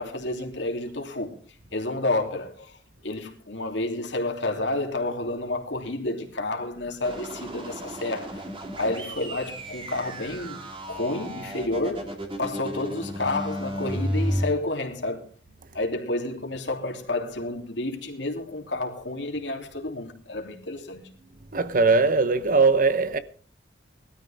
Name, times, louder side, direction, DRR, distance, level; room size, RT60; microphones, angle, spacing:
voice 1, 0.0-8.5 8.8-15.3 15.7-21.2, left 2 dB, 70° left, 3.0 m, -30 dB
sound 1, 7.0-14.4, equal, 30° right, 2.5 m, -33 dB
voice 2, 21.5-23.2, right 4 dB, 45° right, 1.0 m, -20 dB
20.0 x 13.0 x 3.5 m
head